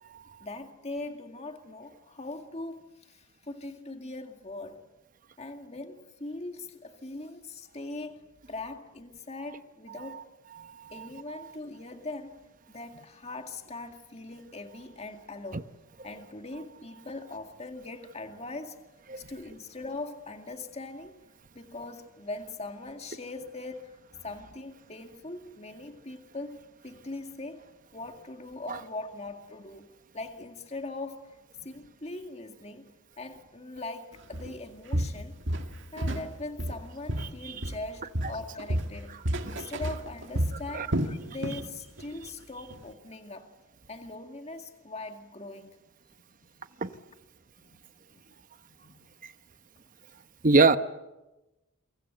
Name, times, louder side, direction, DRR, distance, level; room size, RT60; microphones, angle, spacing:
voice 1, 0.4-4.8 5.4-10.2 10.9-12.4 12.7-15.7 16.0-18.9 19.2-21.2 21.5-24.0 24.2-27.6 27.9-32.9 33.2-35.4 35.9-43.5 43.9-45.8 47.6-48.1 48.7-49.1, left 2 dB, 30° left, 2.1 m, -41 dB
voice 2, 10.6-11.1 19.1-19.2 28.7-28.8 37.4-37.6 39.5-39.6 40.7-40.9 41.2-41.3 46.8-46.9 50.4-50.8, right 4 dB, 40° right, 0.9 m, -24 dB
Walk footsteps, 34.3-34.5 34.9-36.3 36.6-37.9 38.1-41.7 42.0-42.2 42.7-42.8, right 1 dB, 60° right, 2.2 m, -31 dB
29.0 x 25.0 x 8.0 m
head